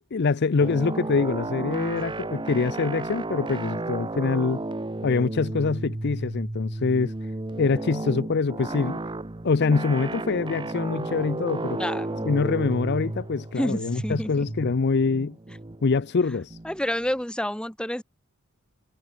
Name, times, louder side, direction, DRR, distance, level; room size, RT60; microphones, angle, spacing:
voice 1, 0.0-4.6 5.0-7.1 7.6-9.0 9.4-11.8 12.3-15.4 15.8-16.6, left 4 dB, 50° left, 0.5 m, -24 dB
sound 1, 0.6-17.1, right 2 dB, 20° right, 0.8 m, -33 dB
voice 2, 11.8-12.4 13.6-14.4 16.6-18.0, equal, 5° left, 1.7 m, -29 dB
head